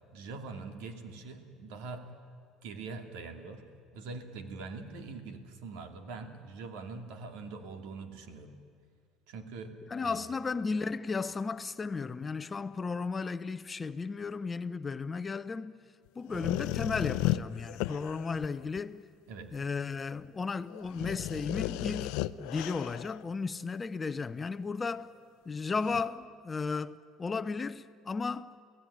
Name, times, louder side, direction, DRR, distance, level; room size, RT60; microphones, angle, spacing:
voice 1, 0.1-2.0 2.6-3.6 3.9-8.6 9.3-9.7 10.0-10.2 19.3-19.5, right 4 dB, 80° right, 2.7 m, -43 dB
voice 2, 9.9-15.8 16.1-19.0 19.5-25.1 25.5-28.5, left 4 dB, 20° left, 0.6 m, -34 dB
sound 1, 16.3-18.8 19.5-19.6 20.2-20.3 20.7-23.2 25.9-26.0, left 16 dB, 75° left, 0.7 m, -34 dB
29.5 x 17.0 x 10.0 m
cardioid pair, 145°, 0 cm